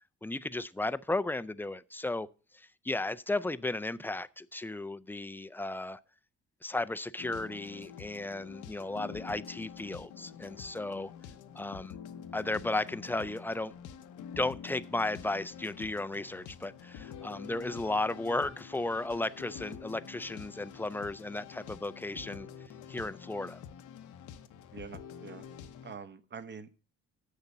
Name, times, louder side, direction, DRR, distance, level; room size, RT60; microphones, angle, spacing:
voice 1, 0.2-2.3 2.5-6.0 6.6-11.1 11.5-11.9 12.3-13.7 14.4-22.5 22.9-23.6, left 2 dB, 5° left, 0.4 m, -34 dB
sound 1, 7.2-25.9, left 8 dB, 80° left, 0.9 m, -47 dB
voice 2, 24.7-25.5 25.8-26.7, right 5 dB, 35° right, 1.0 m, -45 dB
8.0 x 6.7 x 7.1 m
cardioid pair, 90°, 30 cm